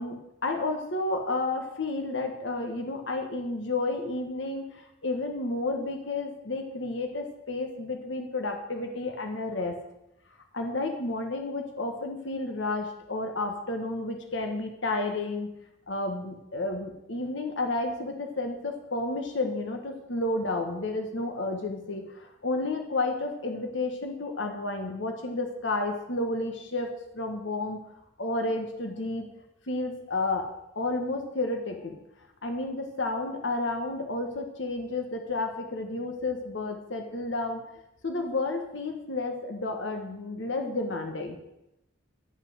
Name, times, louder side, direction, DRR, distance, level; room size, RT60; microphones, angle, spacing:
voice 1, 0.0-9.8 10.5-15.5 15.9-27.8 28.2-29.3 29.7-30.5 30.7-32.0 32.4-37.6 38.0-41.4, left 2 dB, 65° left, 4 dB, 1.4 m, -31 dB
11.5 x 5.8 x 7.8 m, 0.87 s
head